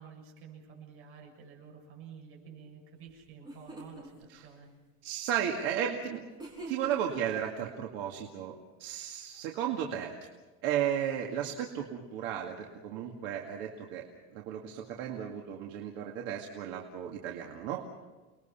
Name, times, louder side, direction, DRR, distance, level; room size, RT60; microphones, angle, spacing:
voice 1, 0.0-4.7, right 6 dB, 45° right, 0 dB, 7.4 m, -50 dB
sound 1, 3.1-3.2 3.4-4.1 6.4-7.2, right 1 dB, 15° right, 4.9 m, -44 dB
voice 2, 5.0-6.3 6.7-10.3 10.6-14.1 14.3-17.8, right 9 dB, 65° right, 1 dB, 2.2 m, -34 dB
29.5 x 21.0 x 5.8 m, 1.2 s
cardioid pair, 180°, 32 cm